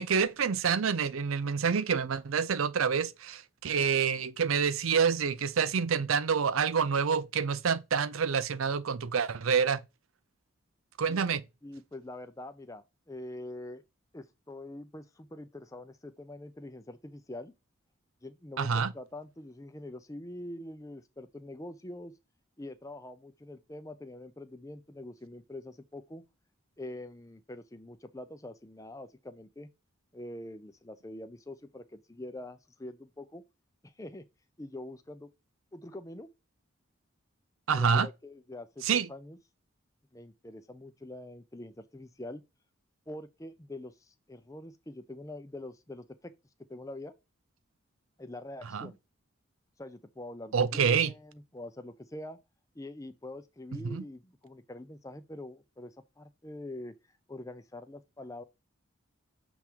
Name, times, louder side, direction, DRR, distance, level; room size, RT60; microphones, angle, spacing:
voice 1, 0.0-9.8 11.0-11.4 18.6-18.9 37.7-38.1 38.8-39.1 48.7-48.9 50.5-51.1 53.8-54.0, right 6 dB, 85° right, 0.5 m, -27 dB
voice 2, 11.6-13.8 14.1-17.5 18.2-22.1 22.6-26.2 26.8-29.7 30.1-33.4 33.8-34.3 34.6-35.3 35.7-36.3 37.7-39.4 40.1-42.4 43.1-46.3 46.7-47.1 48.2-49.0 49.8-52.4 52.7-56.9 57.3-58.4, left 1 dB, 15° left, 0.5 m, -44 dB
7.1 x 3.5 x 4.5 m
head